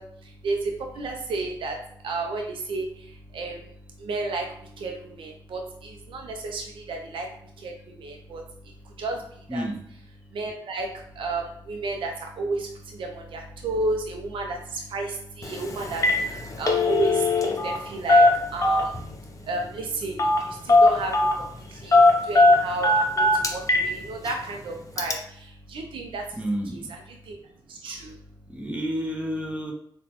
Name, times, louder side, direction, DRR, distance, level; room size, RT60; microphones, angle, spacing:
voice 1, 0.0-1.8 2.0-3.7 4.0-7.3 7.6-8.4 8.8-9.7 10.3-26.4 26.7-27.4 27.7-28.2, right 3 dB, 65° right, 2 dB, 0.5 m, -32 dB
Telephone, 15.4-15.6 15.9-16.2 16.5-17.8 18.1-19.0 20.2-20.4 20.7-21.4 21.9-23.9 24.3-24.4 25.0-25.1, left 2 dB, 35° left, 0.6 m, -18 dB
voice 2, 26.4-26.8 27.8-28.1 28.5-29.7, equal, 15° right, 0 dB, 0.8 m, -30 dB
3.8 x 2.2 x 2.9 m, 0.66 s
supercardioid pair, 55°, 9 cm